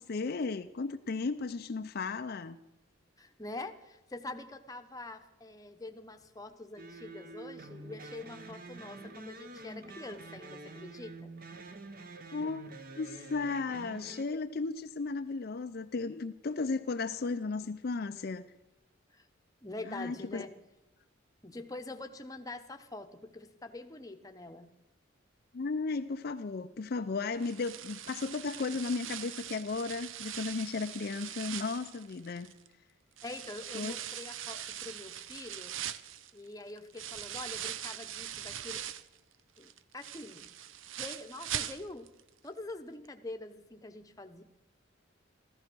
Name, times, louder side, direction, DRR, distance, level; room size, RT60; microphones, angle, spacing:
voice 1, 0.0-2.6 12.3-12.7 12.9-18.4 19.9-20.5 25.5-32.5 33.7-33.9, left 4 dB, 50° left, 8 dB, 0.5 m, -35 dB
voice 2, 3.2-11.3 19.1-19.3 19.6-20.5 21.4-24.7 33.2-35.7 36.3-38.8 39.6-40.5 40.9-42.1 42.4-44.4, left 2 dB, 15° left, 6 dB, 0.9 m, -45 dB
sound 1, 6.8-14.2, right 2 dB, 45° right, 1.1 m, -47 dB
sound 2, 27.4-32.7 33.2-39.2 39.6-42.2 42.5-42.6 43.0-43.1, right 10 dB, 75° right, 0.6 m, -41 dB
14.5 x 14.0 x 6.1 m, 0.98 s
head